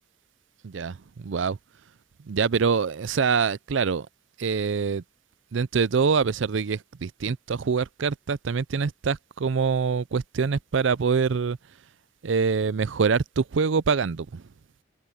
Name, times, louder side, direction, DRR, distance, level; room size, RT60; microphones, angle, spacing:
voice 1, 0.6-1.6 2.2-4.1 4.4-5.0 5.5-11.6 12.2-14.4, right 5 dB, 70° right, 0.5 m, -25 dB
head